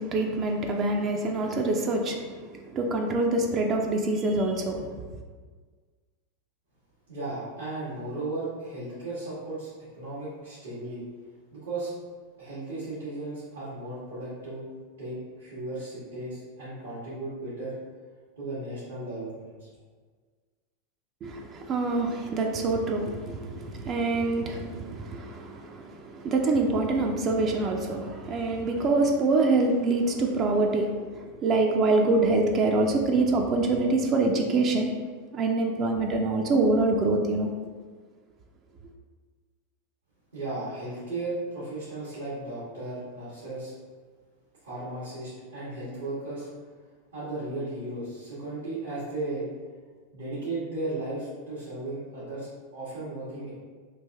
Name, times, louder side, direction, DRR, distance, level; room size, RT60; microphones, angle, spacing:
voice 1, 0.0-4.9 21.2-35.0 35.3-37.5, right 2 dB, 35° right, 2 dB, 0.4 m, -25 dB
voice 2, 7.1-11.0 11.5-11.9 12.4-14.6 15.0-17.7 18.4-19.7 40.3-43.7 44.6-46.5 47.1-49.4 50.1-53.5, right 2 dB, 85° right, -11 dB, 1.4 m, -35 dB
3.3 x 2.5 x 3.4 m, 1.5 s
hypercardioid pair, 105°, 0 cm